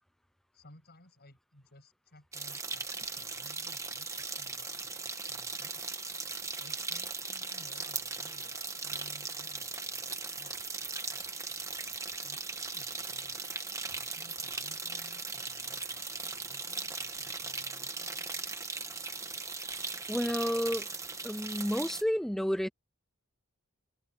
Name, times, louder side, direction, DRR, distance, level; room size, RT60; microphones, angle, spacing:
voice 1, 0.5-2.9 3.2-5.8 6.6-11.6 12.2-18.5, left 1 dB, 50° left, 7.8 m, -58 dB
sound 1, 2.3-22.0, right 4 dB, 15° right, 1.5 m, -38 dB
voice 2, 20.1-20.9 21.2-22.7, equal, ahead, 0.5 m, -30 dB
head